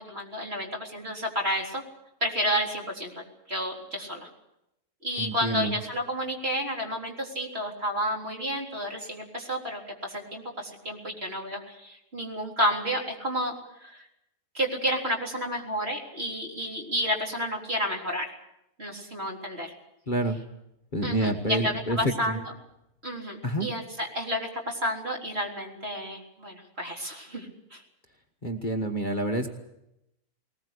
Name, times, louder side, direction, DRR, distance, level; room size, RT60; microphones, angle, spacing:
voice 1, 0.0-1.8 2.2-4.3 5.0-13.5 13.8-14.0 14.5-18.3 18.8-19.7 21.0-22.4 23.0-27.8, equal, 40° right, 0 dB, 4.1 m, -31 dB
voice 2, 5.2-5.8 20.1-20.4 20.9-22.4 23.4-23.7 28.4-29.5, right 1 dB, 35° left, 3 dB, 1.5 m, -28 dB
20.5 x 20.0 x 8.2 m, 0.86 s
omnidirectional pair, 1.6 m